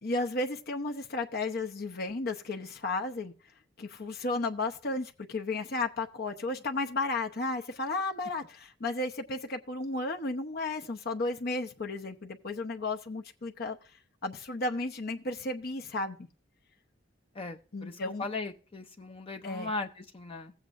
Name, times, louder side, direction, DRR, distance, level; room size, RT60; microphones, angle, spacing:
voice 1, 0.0-3.3 3.8-13.8 14.2-16.2 17.7-18.2 19.4-19.7, left 2 dB, 55° left, 0.9 m, -33 dB
voice 2, 17.3-20.5, left 3 dB, 30° left, 0.6 m, -38 dB
16.0 x 8.1 x 2.6 m
head